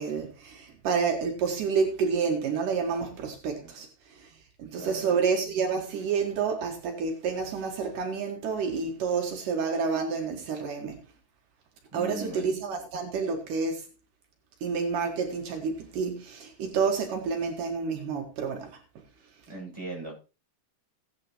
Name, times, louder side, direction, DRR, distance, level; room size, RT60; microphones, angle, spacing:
voice 1, 0.0-4.3 4.6-11.0 11.9-13.9 14.6-18.8, right 5 dB, 75° right, 3.2 m, -29 dB
voice 2, 4.8-5.2 11.9-12.5 19.5-20.1, right 2 dB, 10° right, 7.0 m, -39 dB
17.5 x 9.3 x 3.0 m
omnidirectional pair, 3.7 m